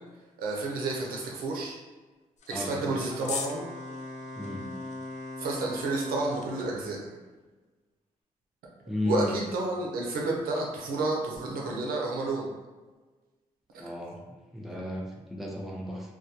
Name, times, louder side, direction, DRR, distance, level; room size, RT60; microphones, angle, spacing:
voice 1, 0.4-1.8 2.5-3.6 5.4-7.0 9.0-12.5, right 2 dB, 85° right, -1 dB, 0.5 m, -30 dB
sound 1, 2.4-6.6, left 5 dB, 55° left, 0.4 m, -43 dB
voice 2, 2.5-3.0 4.4-4.7 8.9-9.3 13.8-14.2 14.5-16.2, left 1 dB, ahead, -2 dB, 0.5 m, -34 dB
Wind instrument woodwind instrument, 3.0-6.8, left 2 dB, 75° left, 1.0 m, -40 dB
2.2 x 2.2 x 2.8 m, 1.3 s
supercardioid pair, 60°, 15 cm